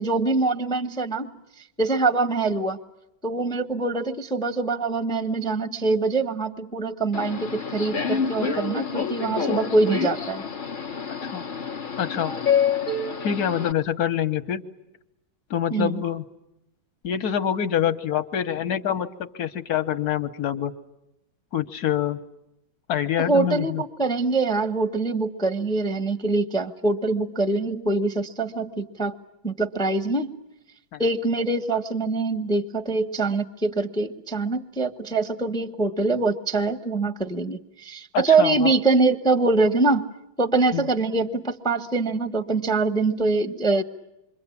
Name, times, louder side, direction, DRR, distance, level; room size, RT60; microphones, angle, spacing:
voice 1, 0.0-1.3 1.8-2.8 3.2-10.4 15.7-16.0 23.2-29.1 29.4-30.3 31.0-40.1 40.4-43.8, right 3 dB, 5° left, 9 dB, 0.7 m, -24 dB
Subway metro underground, 7.1-13.7, left 6 dB, 35° left, 0.8 m, -27 dB
voice 2, 12.0-12.3 13.2-14.6 15.5-16.2 17.0-20.7 21.5-22.2 22.9-23.8 30.9-31.0 38.1-38.7 40.7-40.9, left 9 dB, 55° left, 10 dB, 1.6 m, -26 dB
27.5 x 24.5 x 8.6 m, 0.87 s
omnidirectional pair, 2.2 m